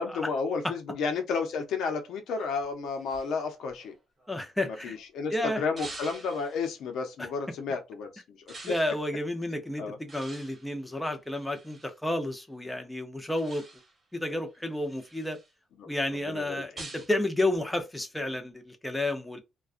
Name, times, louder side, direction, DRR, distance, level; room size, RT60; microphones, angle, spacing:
voice 1, 0.0-3.9 4.7-8.5 9.8-10.0 15.8-16.6, left 5 dB, 80° left, 0.7 m, -32 dB
sound 1, 2.4-5.0 5.8-6.7 8.5-9.0 10.1-12.0 13.4-14.0 14.5-15.5 16.8-17.2, right 2 dB, 30° right, 1.1 m, -47 dB
voice 2, 4.3-5.0 5.3-5.6 8.6-13.6 14.1-15.4 15.8-19.4, left 1 dB, 10° left, 0.7 m, -31 dB
2.3 x 2.3 x 2.5 m
cardioid pair, 90°, 0 cm